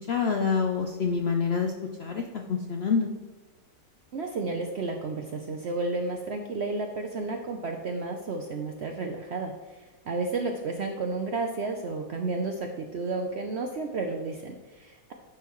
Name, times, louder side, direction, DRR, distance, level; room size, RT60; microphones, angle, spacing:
voice 1, 0.1-1.7 2.0-3.1, left 5 dB, 65° left, 3 dB, 0.6 m, -26 dB
voice 2, 4.1-15.1, right 3 dB, 65° right, 4 dB, 0.6 m, -32 dB
10.5 x 5.6 x 3.0 m, 1.2 s
omnidirectional pair, 1.8 m